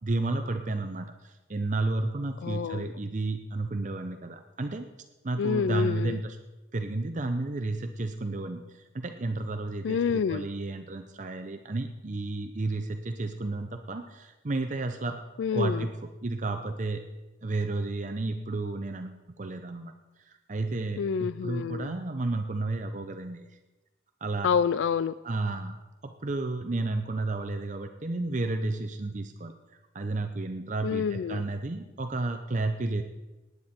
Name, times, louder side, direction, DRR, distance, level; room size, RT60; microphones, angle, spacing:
voice 1, 0.0-4.9 5.2-6.4 6.7-15.2 15.5-15.9 16.2-17.0 17.4-19.9 20.2-23.6 24.2-24.5 25.2-25.8 26.0-29.5 29.9-33.0, right 2 dB, 40° right, 6 dB, 0.7 m, -32 dB
voice 2, 2.4-2.9 5.4-6.2 9.8-10.5 15.4-15.9 21.0-21.9 24.4-25.2 30.8-31.5, left 6 dB, 80° left, 16 dB, 0.3 m, -28 dB
18.5 x 9.6 x 4.3 m, 1.1 s
head